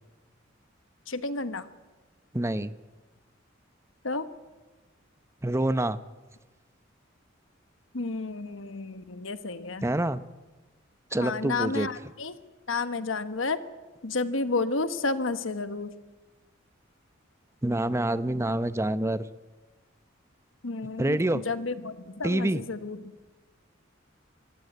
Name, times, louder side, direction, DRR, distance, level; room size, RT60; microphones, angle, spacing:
voice 1, 1.1-1.7 4.0-4.3 7.9-9.9 11.2-12.3 12.7-13.6 14.0-15.9 20.6-23.0, left 3 dB, 75° left, 11 dB, 1.3 m, -31 dB
voice 2, 2.3-2.7 5.4-6.0 9.8-10.2 11.1-11.9 17.6-19.2 21.0-21.4 22.2-22.6, right 1 dB, 15° right, 13 dB, 0.7 m, -26 dB
25.0 x 15.0 x 9.4 m, 1.2 s
head